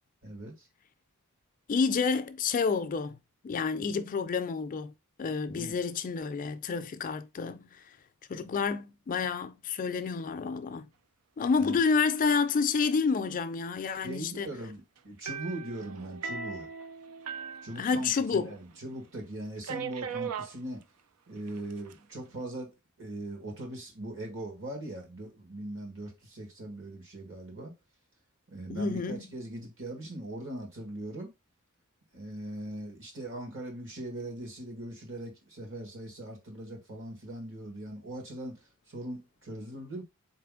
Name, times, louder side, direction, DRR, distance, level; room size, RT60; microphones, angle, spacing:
voice 1, 0.2-0.7 5.5-5.7 11.6-11.8 14.0-16.7 17.6-20.8 21.3-27.7 28.5-31.3 32.1-38.6 38.9-40.0, right 1 dB, 60° right, 1.8 m, -40 dB
voice 2, 1.7-3.2 3.4-4.9 5.2-7.8 8.3-10.9 11.4-14.5 17.8-18.5 28.7-29.3, left 5 dB, 40° left, 0.4 m, -29 dB
sound 1, 15.3-18.5 18.7-18.8 19.6-20.5 21.5-21.9, right 6 dB, 90° right, 0.4 m, -39 dB
4.1 x 3.3 x 3.6 m
head